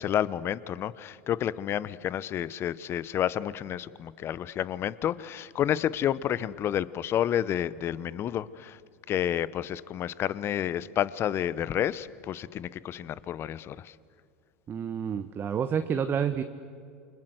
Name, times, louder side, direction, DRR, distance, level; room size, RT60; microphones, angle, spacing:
voice 1, 0.0-8.8 9.1-13.9, left 10 dB, 40° left, 18 dB, 1.0 m, -30 dB
voice 2, 14.7-16.4, right 7 dB, 30° right, 9 dB, 1.3 m, -29 dB
28.5 x 25.5 x 8.0 m, 2.4 s
hypercardioid pair, 90°, 7 cm